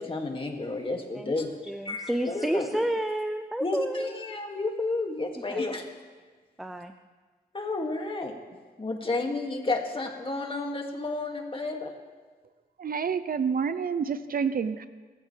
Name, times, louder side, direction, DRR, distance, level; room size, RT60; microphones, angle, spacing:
voice 1, 0.0-1.5 1.8-2.7 3.6-5.9 7.5-8.3 8.8-11.9, left 3 dB, 30° left, 1 dB, 2.4 m, -31 dB
voice 2, 1.6-4.1 5.4-5.6 6.6-6.9, right 1 dB, ahead, 7 dB, 0.6 m, -30 dB
voice 3, 12.8-14.9, right 6 dB, 55° right, 12 dB, 0.7 m, -28 dB
26.5 x 14.5 x 3.4 m, 1.4 s
cardioid pair, 95°, 18 cm